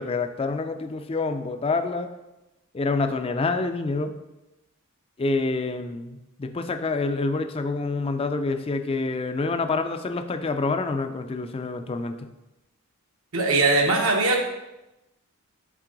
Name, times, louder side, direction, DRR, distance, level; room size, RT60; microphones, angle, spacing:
voice 1, 0.0-2.1 2.7-4.1 5.2-12.3, left 3 dB, 25° left, 7 dB, 0.4 m, -27 dB
voice 2, 13.3-14.4, right 3 dB, 75° right, 1 dB, 1.2 m, -20 dB
7.3 x 3.7 x 3.9 m, 0.97 s
head